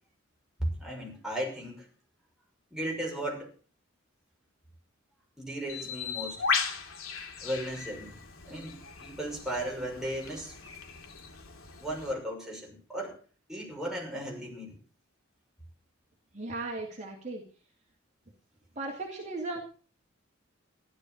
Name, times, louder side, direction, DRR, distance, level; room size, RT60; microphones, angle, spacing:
voice 1, 0.6-1.9 2.7-3.5 5.4-6.4 7.4-8.2 8.4-10.6 11.8-13.2 13.5-14.8, right 1 dB, 5° right, -2 dB, 6.2 m, -35 dB
Bird, 5.7-12.1, left 5 dB, 85° left, 2.6 m, -36 dB
voice 2, 16.3-17.4 18.8-19.6, right 2 dB, 35° right, 0 dB, 2.6 m, -36 dB
15.0 x 12.0 x 6.4 m, 0.40 s
head